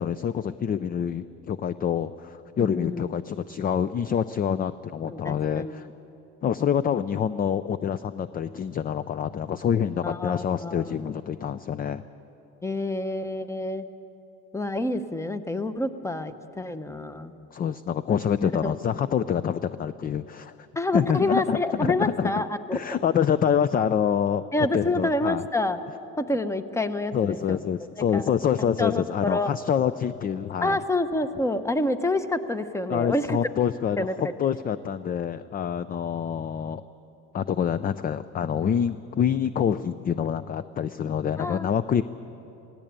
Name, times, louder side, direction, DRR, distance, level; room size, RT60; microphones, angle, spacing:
voice 1, 0.0-5.9 6.4-12.0 17.5-20.5 20.9-22.3 22.7-24.4 24.7-25.5 27.1-30.8 32.9-36.8 37.3-42.0, left 8 dB, 25° left, 14 dB, 0.4 m, -26 dB
voice 2, 2.6-3.1 5.1-5.7 10.0-11.0 12.6-13.8 14.5-17.3 18.4-18.7 20.8-22.6 24.5-25.8 26.2-27.6 28.0-28.3 28.8-29.5 30.6-33.4 34.0-34.3 41.4-41.7, left 2 dB, 10° left, 11 dB, 0.9 m, -28 dB
17.5 x 17.0 x 8.8 m, 3.0 s
supercardioid pair, 105°, 33 cm